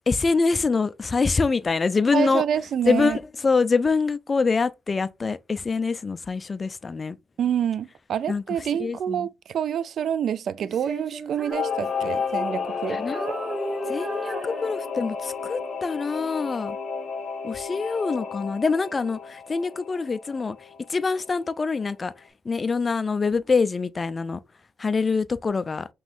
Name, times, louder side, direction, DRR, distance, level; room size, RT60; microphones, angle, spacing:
voice 1, 0.1-2.4 2.9-7.2 8.3-8.4 8.8-9.3 12.9-13.3 13.9-16.8 17.4-20.6 20.9-22.1 22.5-24.4 24.8-25.9, left 4 dB, 30° left, 0.4 m, -25 dB
voice 2, 2.1-3.2 7.4-13.0, right 9 dB, 65° right, 0.3 m, -27 dB
Female singing, 10.6-12.8 13.1-15.2, right 2 dB, 45° right, 1.1 m, -36 dB
Singing / Musical instrument, 11.5-21.5 21.9-22.0, left 5 dB, 50° left, 1.0 m, -32 dB
5.4 x 3.0 x 2.4 m
cardioid pair, 90°, 0 cm